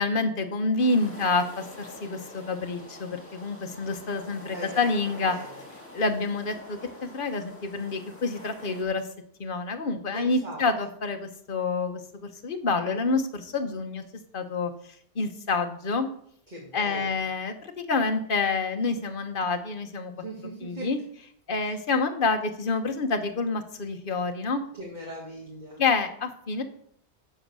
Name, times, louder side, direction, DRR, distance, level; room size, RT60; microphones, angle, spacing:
voice 1, 0.0-5.3 5.9-9.0 9.4-14.0 14.3-14.7 15.1-16.1 16.7-20.1 20.6-21.0 21.5-24.6 25.8-26.6, left 3 dB, 50° left, 6 dB, 1.2 m, -28 dB
sound 1, 0.8-8.8, left 1 dB, 10° left, 2.3 m, -46 dB
voice 2, 5.3-5.6 10.1-10.6 16.5-17.2 20.1-20.9 21.6-21.8 24.8-25.8, right 2 dB, 40° right, -3 dB, 2.4 m, -40 dB
7.8 x 7.7 x 6.3 m, 0.66 s
omnidirectional pair, 1.1 m